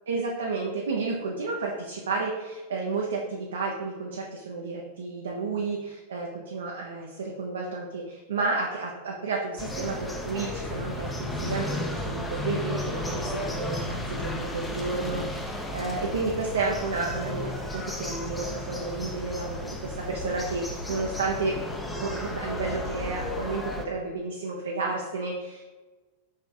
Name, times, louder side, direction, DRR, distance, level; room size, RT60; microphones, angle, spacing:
voice 1, 0.1-21.6 22.0-25.7, right 3 dB, 65° right, -1 dB, 0.5 m, -31 dB
sound 1, 9.6-23.8, left 1 dB, 10° left, 0.5 m, -34 dB
4.9 x 3.2 x 2.7 m, 1.2 s
figure-of-eight pair, 90°, 0 cm